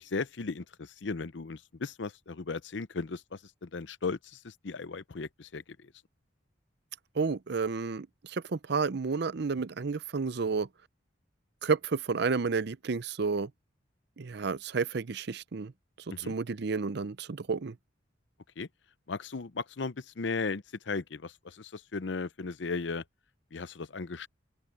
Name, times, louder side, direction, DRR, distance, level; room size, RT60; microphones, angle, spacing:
voice 1, 0.0-5.9 16.1-16.3 18.6-18.7 19.1-23.0 23.5-24.3, left 4 dB, 65° left, 0.7 m, -36 dB
voice 2, 7.2-10.7 11.6-13.5 14.2-15.7 16.3-17.7, right 4 dB, 60° right, 0.6 m, -31 dB
head